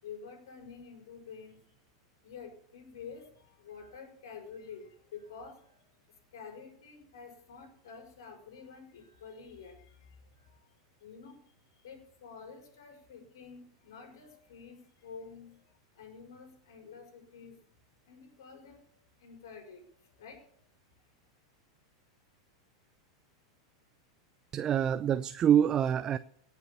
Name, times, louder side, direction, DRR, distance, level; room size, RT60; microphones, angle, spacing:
voice 1, 0.0-1.6 2.2-11.4 11.8-17.7 18.1-20.6, left 5 dB, 65° left, 4 dB, 4.8 m, -49 dB
voice 2, 24.5-26.2, right 9 dB, 30° right, 14 dB, 0.5 m, -26 dB
18.0 x 6.9 x 6.9 m, 0.62 s
hypercardioid pair, 95°, 2 cm